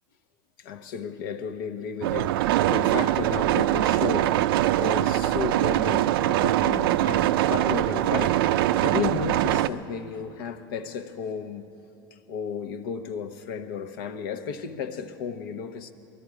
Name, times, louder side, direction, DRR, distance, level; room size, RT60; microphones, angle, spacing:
voice 1, 0.6-4.4 4.8-11.7 12.1-15.9, left 6 dB, 80° left, 0.9 m, -33 dB
sound 1, 2.0-9.7, right 14 dB, 90° right, 0.4 m, -23 dB
21.0 x 12.5 x 4.9 m
supercardioid pair, 115°, 12 cm